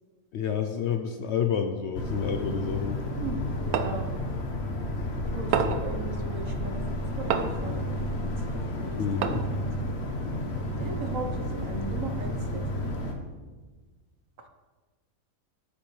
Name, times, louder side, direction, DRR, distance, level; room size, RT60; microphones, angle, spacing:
voice 1, 0.3-3.0 9.0-9.4, left 7 dB, 65° left, 6 dB, 0.7 m, -29 dB
sound 1, 1.9-13.1, left 1 dB, 50° left, 1.2 m, -31 dB
voice 2, 3.2-4.1 5.3-6.8 7.2-8.3 8.8-9.0 10.8-12.6, right 3 dB, 65° right, 6 dB, 1.2 m, -37 dB
sound 2, 3.7-4.0 5.5-5.9 7.3-7.7 9.2-9.6, right 7 dB, 85° right, 1.1 m, -28 dB
12.5 x 6.8 x 3.2 m, 1.4 s
omnidirectional pair, 1.5 m